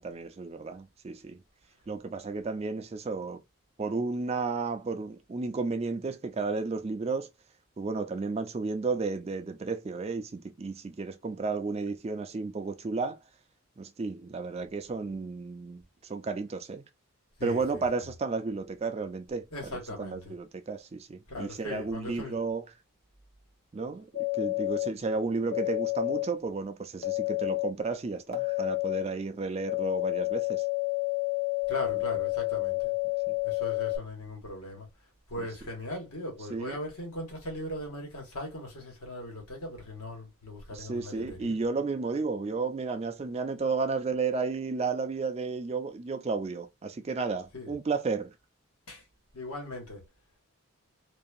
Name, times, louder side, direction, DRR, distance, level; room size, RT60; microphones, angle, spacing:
voice 1, 0.0-1.4 1.9-3.4 3.8-7.3 7.8-13.2 13.8-16.8 17.4-22.6 23.7-24.1 24.3-30.6 33.3-33.4 35.4-35.5 36.5-36.8 40.7-48.3, right 4 dB, 30° right, 0.3 m, -33 dB
voice 2, 17.4-17.8 19.5-20.3 21.3-22.4 31.7-32.9 33.4-34.9 35.3-41.6 47.5-47.7 48.9-49.0 49.3-50.0, left 1 dB, 85° left, 1.4 m, -39 dB
sound 1, 24.1-24.9 25.5-26.3 27.0-27.7 28.3-29.0 29.7-34.0, left 27 dB, 30° left, 0.5 m, -30 dB
2.7 x 2.3 x 2.5 m
head